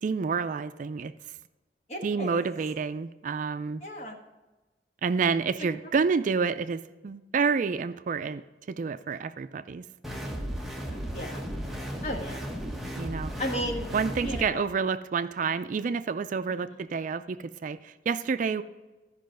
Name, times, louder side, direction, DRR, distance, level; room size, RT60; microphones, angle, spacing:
voice 1, 0.0-1.1 2.0-3.8 5.0-8.4 8.7-9.8 13.0-13.3 13.9-18.6, right 5 dB, 45° right, 12 dB, 0.4 m, -29 dB
voice 2, 1.9-2.4 3.8-4.2 10.9-11.4 12.0-12.5 13.4-13.9 14.2-14.7 16.5-16.6, equal, 40° left, 1 dB, 1.6 m, -35 dB
sound 1, 10.0-14.4, equal, ahead, 1.0 m, -35 dB
14.0 x 5.5 x 5.2 m, 1.1 s
head